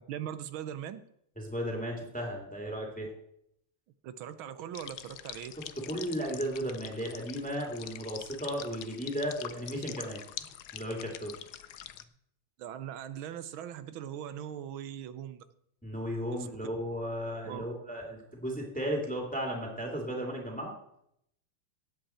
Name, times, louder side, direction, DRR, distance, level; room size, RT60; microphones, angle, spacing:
voice 1, 0.1-1.0 4.0-5.5 12.6-15.4 16.3-16.5 17.4-17.6, right 10 dB, 85° right, 13 dB, 1.6 m, -40 dB
voice 2, 1.4-3.1 5.8-10.2 10.7-11.3 15.8-20.7, equal, 5° left, 0 dB, 2.2 m, -35 dB
sound 1, 4.8-12.0, left 12 dB, 70° left, 1.0 m, -45 dB
17.0 x 8.0 x 4.3 m, 0.75 s
omnidirectional pair, 2.2 m